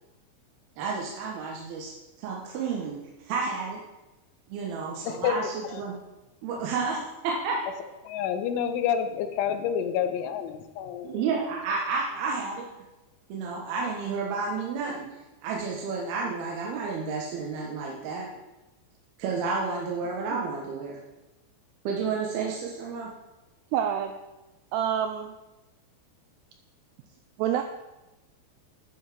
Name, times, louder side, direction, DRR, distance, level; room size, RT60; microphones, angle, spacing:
voice 1, 0.8-1.9 2.2-3.0 3.2-3.8 4.5-5.9 6.4-7.6 11.0-12.7 13.3-15.1 15.4-18.3 19.2-21.0 21.8-23.1, right 4 dB, 70° right, -2 dB, 2.6 m, -31 dB
voice 2, 5.1-5.4 5.7-5.8 8.0-11.1, left 8 dB, 90° left, 9 dB, 3.2 m, -28 dB
voice 3, 23.7-24.1 24.7-25.3 27.4-27.6, right 9 dB, 90° right, 6 dB, 2.3 m, -27 dB
11.0 x 5.5 x 6.0 m, 1.0 s
omnidirectional pair, 5.4 m